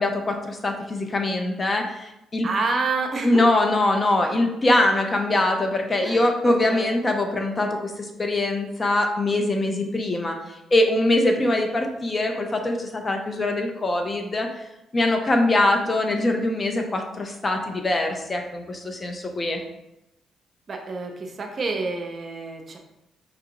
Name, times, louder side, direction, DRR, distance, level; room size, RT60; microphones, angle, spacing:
voice 1, 0.0-2.5 3.2-14.6 14.9-19.6, left 2 dB, 30° left, 3 dB, 0.5 m, -23 dB
voice 2, 2.4-3.4 6.0-7.0 20.7-22.8, right 3 dB, 40° right, 3 dB, 0.6 m, -28 dB
4.9 x 2.4 x 2.9 m, 0.88 s
cardioid pair, 90°, 0 cm